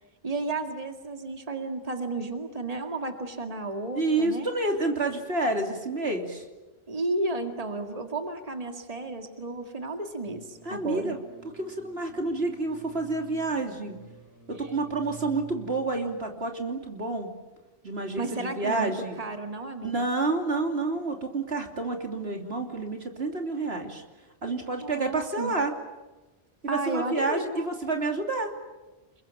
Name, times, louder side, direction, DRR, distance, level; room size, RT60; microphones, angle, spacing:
voice 1, 0.2-4.5 6.9-11.1 18.2-18.9 19.2-20.1 24.8-25.5 26.7-27.6, right 2 dB, 35° right, 5 dB, 2.2 m, -32 dB
voice 2, 3.9-6.4 10.6-11.2 11.5-14.0 14.5-17.3 17.8-19.2 19.8-24.0 24.4-25.7 26.6-28.5, right 3 dB, 80° right, 3 dB, 3.4 m, -29 dB
sound 1, 10.2-16.2, right 8 dB, 20° right, 1.5 m, -50 dB
28.0 x 22.5 x 9.0 m, 1.1 s
omnidirectional pair, 1.1 m